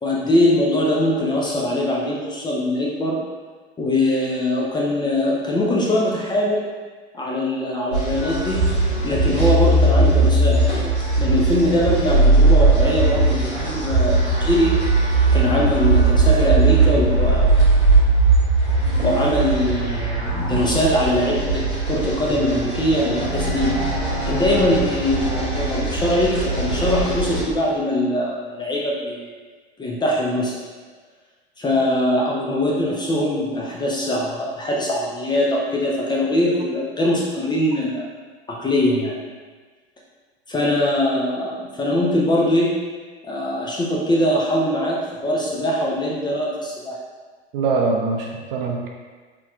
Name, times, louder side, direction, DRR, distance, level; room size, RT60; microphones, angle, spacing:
voice 1, 0.0-3.2 3.8-6.7 7.1-8.6 9.0-10.6 11.2-14.8 15.3-17.5 19.0-23.7 24.2-29.2 29.8-30.5 31.6-38.1 38.5-39.1 40.5-42.7 43.2-46.9, left 1 dB, 15° left, -4 dB, 0.5 m, -22 dB
sound 1, 7.9-27.4, right 2 dB, 90° left, 1.2 m, -19 dB
voice 2, 47.5-48.9, right 4 dB, 60° right, 0 dB, 0.5 m, -23 dB
4.1 x 3.2 x 2.4 m, 1.4 s
figure-of-eight pair, 80°, 32 cm